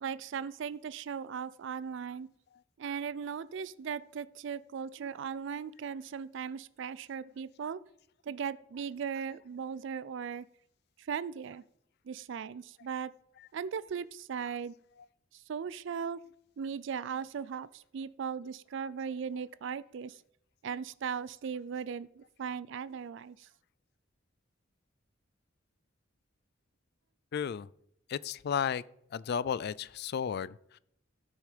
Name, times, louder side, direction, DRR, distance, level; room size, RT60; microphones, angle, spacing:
voice 1, 0.0-2.3 2.8-7.8 8.3-10.5 11.1-11.6 12.1-13.1 13.5-14.7 15.3-16.2 16.6-20.2 20.6-23.5, right 6 dB, 65° right, 0.4 m, -38 dB
voice 2, 27.3-27.7 28.1-28.8 29.1-30.8, left 7 dB, 55° left, 0.3 m, -33 dB
13.5 x 6.4 x 5.0 m
head